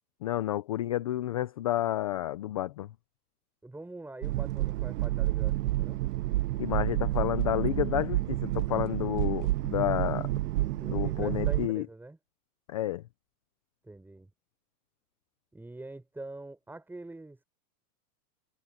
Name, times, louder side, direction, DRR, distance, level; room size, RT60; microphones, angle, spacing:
voice 1, 0.2-2.9 6.6-10.3 10.9-11.9 12.7-13.0, left 14 dB, 25° left, 0.3 m, -30 dB
voice 2, 3.6-6.0 10.4-12.2 13.8-14.3 15.5-17.4, right 2 dB, 5° right, 5.5 m, -44 dB
sound 1, 4.2-11.7, right 17 dB, 85° right, 0.6 m, -29 dB
supercardioid pair, 150°, 46 cm